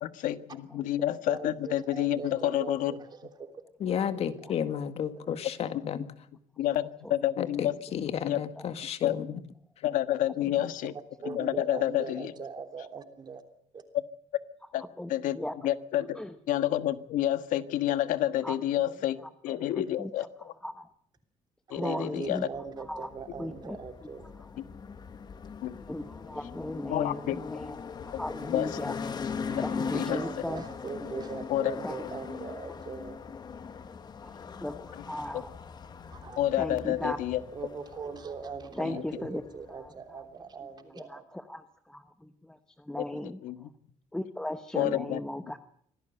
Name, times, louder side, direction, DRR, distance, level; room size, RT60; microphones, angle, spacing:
voice 1, 0.0-2.9 6.6-7.7 8.2-8.4 9.0-9.2 9.8-10.9 11.2-12.3 14.7-14.8 15.1-15.4 15.6-16.2 16.5-20.5 21.7-22.5 24.6-24.7 25.6-25.7 26.9-27.4 28.1-28.2 28.5-28.9 29.9-30.2 31.5-31.7 35.3-35.4 36.4-37.4 38.8-39.0 43.0-43.7 44.7-45.2, left 13 dB, 90° left, 12 dB, 1.5 m, -29 dB
voice 2, 1.3-3.5 3.9-4.0 5.2-5.4 11.2-13.4 13.7-13.8 21.8-24.4 29.3-29.6 30.1-33.2 36.1-36.4 37.5-41.2, right 5 dB, 35° right, 7 dB, 3.3 m, -41 dB
voice 3, 3.8-6.1 7.4-9.4, left 8 dB, 50° left, 10 dB, 2.0 m, -32 dB
voice 4, 15.0-15.5 16.2-16.3 18.4-18.6 20.0-20.1 20.6-20.9 21.7-22.4 22.9-23.1 23.4-23.8 25.8-27.7 28.2-28.9 29.6-30.6 31.8-32.0 34.2-34.8 35.1-35.5 36.6-37.2 38.7-39.4 39.8-39.9 40.9-41.6 41.9-42.6 42.9-43.4 44.1-45.7, left 1 dB, 5° left, 9 dB, 1.0 m, -36 dB
sound 1, 22.5-40.0, left 5 dB, 30° left, 1.6 m, -40 dB
25.5 x 17.5 x 7.9 m, 0.66 s
cardioid pair, 160°, 13 cm